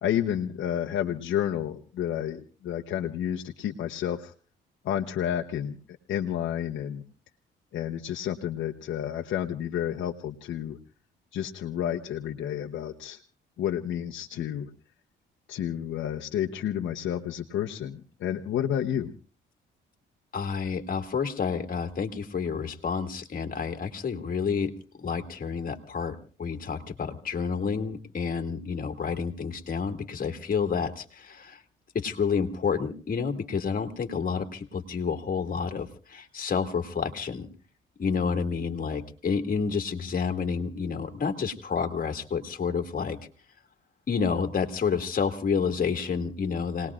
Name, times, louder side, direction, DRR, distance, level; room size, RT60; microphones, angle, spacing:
voice 1, 0.0-4.3 4.8-5.8 6.1-7.0 7.7-10.8 11.3-13.2 13.6-14.7 15.5-19.1, left 10 dB, 70° left, 2 dB, 1.0 m, -30 dB
voice 2, 20.3-31.6 31.9-37.5 38.0-43.2 44.1-46.9, left 6 dB, 45° left, 5 dB, 2.3 m, -29 dB
29.5 x 19.5 x 2.5 m, 0.39 s
cardioid pair, 90°, 20 cm